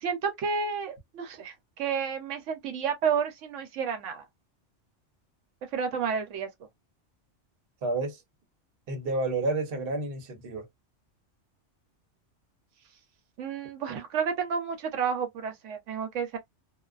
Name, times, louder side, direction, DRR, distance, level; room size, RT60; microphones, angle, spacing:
voice 1, 0.0-4.2 5.7-6.5 13.4-16.4, right 6 dB, 80° right, 1.0 m, -31 dB
voice 2, 7.8-8.2 8.9-10.7, right 2 dB, 55° right, 0.9 m, -30 dB
2.4 x 2.3 x 2.3 m
omnidirectional pair, 1.2 m